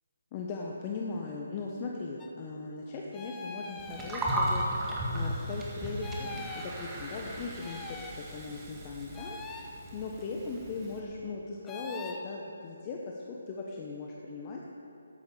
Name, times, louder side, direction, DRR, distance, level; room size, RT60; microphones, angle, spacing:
voice 1, 0.3-4.8 5.1-14.6, left 4 dB, 25° left, -1 dB, 1.2 m, -39 dB
sound 1, 2.2-2.3 3.1-4.7 6.0-6.7 7.6-8.2 9.1-9.7 11.7-12.2, left 3 dB, 10° left, 0.9 m, -43 dB
Gurgling, 3.8-11.0, right 1 dB, 10° right, 2.0 m, -36 dB
13.0 x 9.5 x 6.8 m, 2.9 s
figure-of-eight pair, 150°, 0 cm